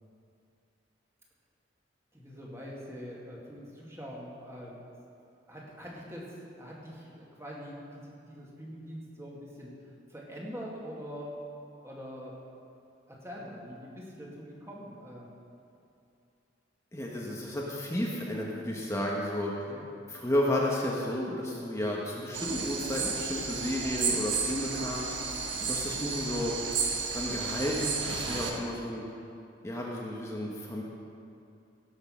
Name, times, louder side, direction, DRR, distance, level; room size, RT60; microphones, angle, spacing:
voice 1, 2.1-4.8 5.5-9.7 10.1-11.4 11.8-12.4 13.1-15.3 19.7-19.9, equal, 15° right, -4 dB, 2.2 m, -44 dB
voice 2, 16.9-19.5 20.1-25.1 25.6-26.5 27.1-29.0 29.6-30.8, left 1 dB, 15° left, -3 dB, 1.2 m, -32 dB
sound 1, 22.3-28.5, right 5 dB, 70° right, 1.5 m, -32 dB
17.0 x 6.4 x 6.3 m, 2.6 s
head